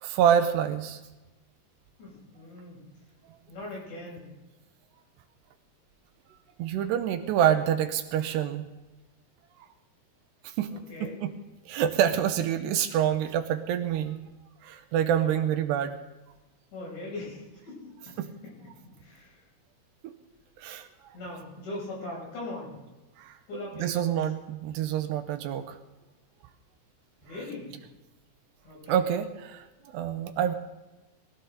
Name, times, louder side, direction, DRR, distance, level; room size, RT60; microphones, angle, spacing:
voice 1, 0.0-1.0 6.6-8.7 10.6-10.7 11.0-11.3 11.7-14.2 14.6-16.0 18.2-18.3 20.0-20.1 20.6-20.9 23.2-23.4 23.8-25.8 28.9-29.7 29.9-30.5, right 9 dB, 80° right, 8 dB, 2.7 m, -26 dB
voice 2, 2.0-2.8 3.5-4.3 10.7-11.2 15.2-15.6 16.7-17.9 19.0-19.4 21.1-22.7 23.5-24.1 27.2-27.7 28.6-29.0, left 2 dB, 75° left, -5 dB, 9.4 m, -40 dB
21.0 x 14.5 x 4.0 m, 1.1 s
omnidirectional pair, 5.2 m